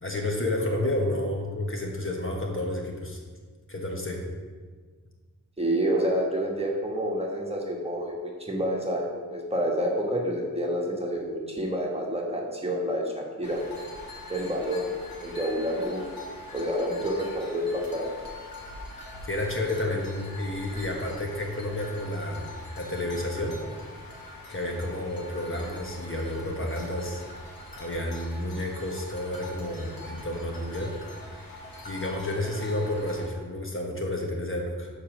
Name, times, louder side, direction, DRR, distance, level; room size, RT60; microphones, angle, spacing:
voice 1, 0.0-3.2 3.7-4.2 19.3-23.6 24.5-27.2 27.8-30.9 31.8-34.9, left 1 dB, 40° left, 0 dB, 1.2 m, -30 dB
voice 2, 5.6-13.6 14.3-14.9 15.2-16.1 16.5-18.1, equal, 15° right, -1 dB, 1.3 m, -28 dB
sound 1, 13.4-33.3, left 2 dB, 85° left, 1.5 m, -43 dB
7.1 x 5.0 x 6.0 m, 1.5 s
wide cardioid pair, 100°, 34 cm